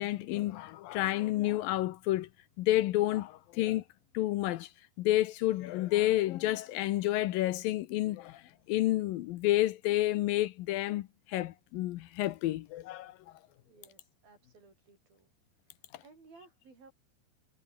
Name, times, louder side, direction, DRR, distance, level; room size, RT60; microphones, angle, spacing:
voice 1, 0.0-2.3 2.6-3.8 4.1-4.7 5.0-13.2, left 15 dB, 75° left, 2.3 m, -30 dB
voice 2, 13.7-15.3 15.6-16.9, right 4 dB, 60° right, 9.9 m, -59 dB
omnidirectional pair, 4.7 m